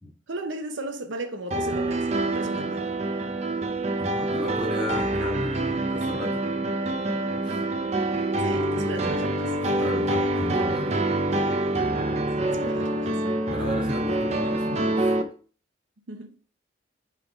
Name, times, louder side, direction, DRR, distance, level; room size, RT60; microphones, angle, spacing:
voice 1, 0.3-2.9 8.4-9.5 12.5-13.1 16.1-16.3, right 2 dB, 90° right, 0.8 m, -35 dB
sound 1, 1.5-15.2, right 1 dB, 35° right, 0.7 m, -26 dB
voice 2, 4.0-6.4 7.4-7.6 8.8-9.1 9.6-11.0 12.7-12.8 13.5-15.1, left 1 dB, 5° right, 2.6 m, -35 dB
5.8 x 3.5 x 5.8 m
head